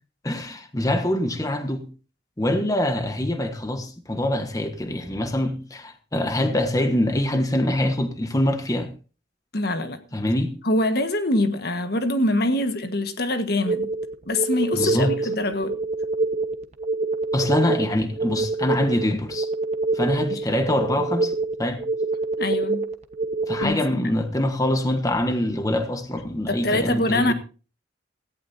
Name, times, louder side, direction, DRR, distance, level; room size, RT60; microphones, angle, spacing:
voice 1, 0.2-1.9 2.4-8.9 10.1-10.5 14.7-15.1 17.3-19.5 19.9-21.3 21.6-21.8 23.5-27.3, left 1 dB, 20° left, 1.3 m, -24 dB
voice 2, 9.5-10.0 10.6-13.9 14.3-15.7 20.3-20.4 22.4-22.8 23.6-24.1 26.5-27.3, left 1 dB, 55° left, 1.5 m, -24 dB
sound 1, 13.6-23.6, right 3 dB, 35° right, 1.2 m, -26 dB
17.5 x 14.5 x 2.7 m
head